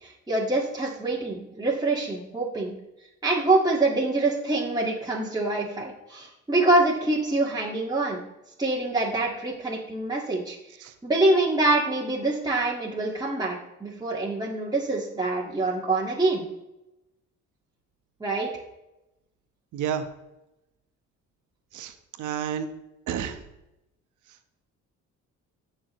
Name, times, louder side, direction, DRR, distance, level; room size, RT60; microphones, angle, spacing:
voice 1, 0.0-2.7 3.2-8.2 8.6-10.6 11.0-16.4 18.2-18.5, right 2 dB, 15° right, -4 dB, 1.8 m, -25 dB
voice 2, 19.7-20.1 21.7-22.7 23.1-23.4, right 8 dB, 80° right, 8 dB, 1.1 m, -30 dB
16.5 x 6.2 x 3.1 m, 0.94 s
cardioid pair, 90°, 30 cm